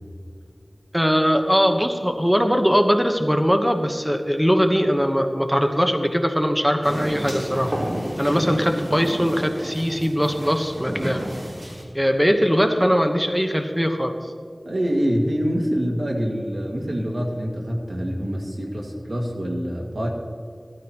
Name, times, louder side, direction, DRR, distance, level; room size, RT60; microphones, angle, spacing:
voice 1, 0.9-7.7 8.2-11.2 11.9-14.2, equal, 5° right, 5 dB, 1.1 m, -20 dB
sound 1, 6.8-11.8, equal, 45° right, 3.0 m, -31 dB
voice 2, 14.7-20.1, equal, 85° right, 0 dB, 2.0 m, -25 dB
16.5 x 13.0 x 3.0 m, 2.2 s
wide cardioid pair, 45°, 0 cm